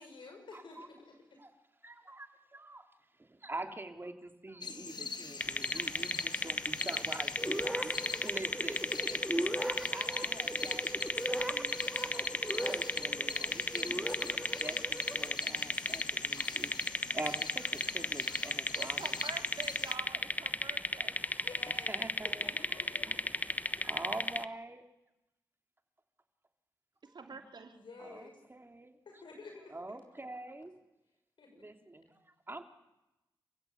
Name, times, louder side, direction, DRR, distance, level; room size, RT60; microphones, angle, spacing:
voice 1, 0.0-1.1 21.4-21.9 22.2-23.1 27.7-28.4 29.1-29.7 31.4-31.6, left 3 dB, 75° left, 3 dB, 6.4 m, -50 dB
voice 2, 0.5-0.9 1.4-1.5 1.8-2.9 3.2-14.1 14.5-16.7 17.1-19.2 21.3-23.2 23.7-24.8 28.0-29.0 29.7-30.7 31.5-32.6, right 2 dB, 25° right, 5 dB, 3.0 m, -46 dB
sound 1, 4.6-20.0, left 4 dB, 60° left, 1.8 m, -44 dB
sound 2, 5.4-24.5, left 2 dB, 20° left, 1.2 m, -34 dB
sound 3, 7.4-15.3, right 1 dB, 5° right, 1.9 m, -39 dB
voice 3, 18.7-21.2 27.0-27.8, right 4 dB, 65° right, 5 dB, 2.9 m, -46 dB
29.0 x 15.5 x 8.5 m, 0.96 s
cardioid pair, 60°, 8 cm